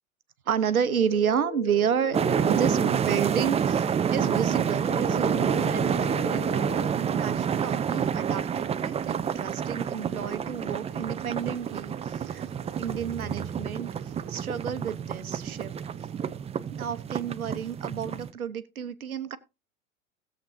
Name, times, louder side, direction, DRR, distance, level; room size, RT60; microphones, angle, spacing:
voice 1, 0.5-2.2 2.4-12.5 12.8-13.9 14.3-15.7 16.7-19.4, right 8 dB, 90° right, 0.9 m, -31 dB
sound 1, 0.9-2.9 4.9-6.9, left 17 dB, 45° left, 1.1 m, -38 dB
sound 2, 1.7-18.3, right 11 dB, 50° right, 1.6 m, -49 dB
sound 3, 2.1-18.3, right 7 dB, 15° right, 0.5 m, -28 dB
17.5 x 7.7 x 2.6 m
hypercardioid pair, 90°, 41 cm